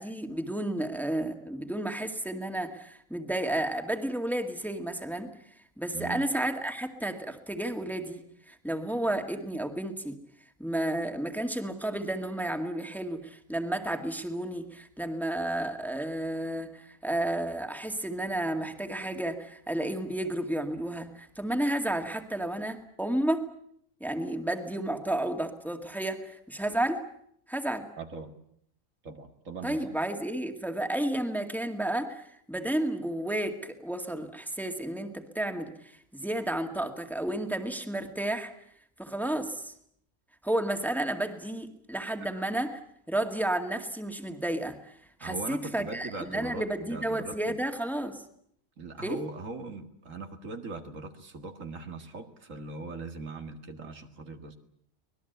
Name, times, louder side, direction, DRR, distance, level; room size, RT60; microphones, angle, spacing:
voice 1, 0.0-5.3 5.8-10.2 10.6-23.5 24.0-27.0 27.5-27.9 29.6-38.6 39.0-39.7 40.4-42.8 43.1-44.9 45.2-48.2 49.0-49.2, right 1 dB, ahead, 5 dB, 2.1 m, -32 dB
voice 2, 5.9-6.2 27.9-28.3 29.0-29.9 45.2-47.6 48.8-54.6, right 3 dB, 75° right, 5 dB, 2.3 m, -40 dB
24.5 x 20.0 x 8.1 m, 0.69 s
omnidirectional pair, 1.4 m